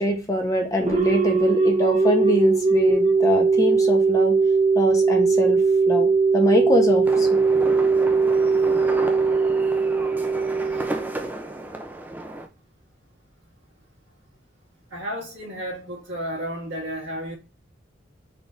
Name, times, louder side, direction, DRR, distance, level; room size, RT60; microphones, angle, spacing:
voice 1, 0.0-4.3 4.8-5.6 5.9-7.4, left 1 dB, 15° left, 0.7 m, -23 dB
sound 1, 0.8-11.5, right 4 dB, 40° right, 0.8 m, -20 dB
sound 2, 7.1-12.5, right 1 dB, 10° right, 0.4 m, -33 dB
voice 2, 14.9-17.4, equal, 70° right, 1.8 m, -32 dB
4.2 x 2.5 x 3.3 m
head